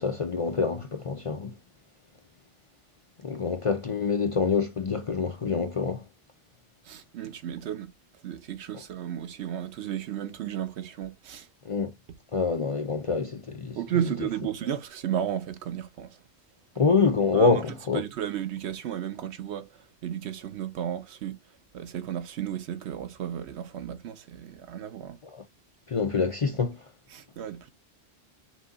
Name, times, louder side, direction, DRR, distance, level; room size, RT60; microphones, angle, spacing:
voice 1, 0.0-1.5 3.2-6.0 11.7-11.9 12.3-13.8 16.8-18.0 25.3-25.4 25.9-26.8, left 4 dB, 45° left, 0.4 m, -26 dB
voice 2, 6.9-7.9 8.2-11.5 13.8-16.2 17.3-17.6 17.9-21.4 21.7-25.2 27.1-27.7, right 10 dB, 85° right, 1.0 m, -33 dB
6.1 x 2.3 x 3.9 m
omnidirectional pair, 1.1 m